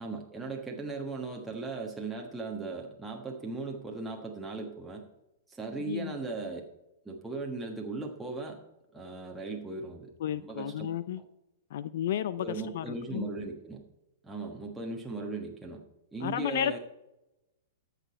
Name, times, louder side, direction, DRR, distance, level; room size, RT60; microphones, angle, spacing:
voice 1, 0.0-5.0 5.5-6.6 7.0-8.6 8.9-10.9 12.4-13.8 14.2-15.8 16.1-16.8, right 3 dB, 5° right, -1 dB, 1.3 m, -38 dB
voice 2, 5.8-6.2 10.2-11.2 11.7-13.3 16.2-16.8, left 10 dB, 65° left, 16 dB, 0.5 m, -33 dB
13.5 x 6.8 x 4.2 m, 0.91 s
hypercardioid pair, 120°, 0 cm